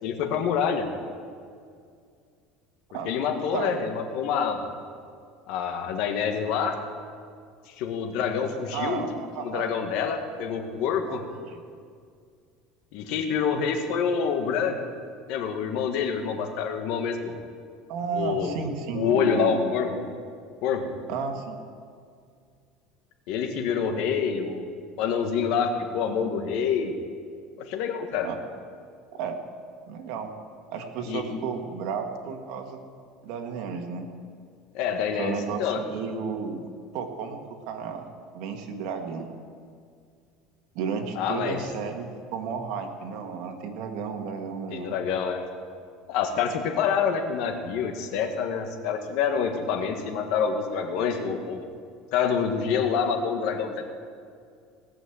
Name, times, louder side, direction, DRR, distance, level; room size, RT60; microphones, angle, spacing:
voice 1, 0.0-0.9 3.0-4.6 5.5-6.8 7.7-9.1 9.4-11.2 12.9-14.8 15.3-17.3 18.1-18.5 18.9-20.0 20.6-20.9 23.3-24.7 25.0-26.9 27.6-28.3 31.1-31.4 34.7-35.8 41.1-41.6 44.7-45.5 46.1-51.7 52.1-53.8, left 6 dB, 65° left, 5 dB, 1.7 m, -27 dB
voice 2, 8.7-9.7 11.1-11.6 17.9-19.7 21.1-21.6 28.2-28.4 29.1-29.4 29.9-30.3 30.7-32.9 33.2-34.1 35.1-36.6 36.9-38.0 38.3-39.4 40.7-45.0, right 5 dB, 65° right, 4 dB, 1.7 m, -33 dB
18.0 x 6.3 x 7.9 m, 2.2 s
supercardioid pair, 135°, 0 cm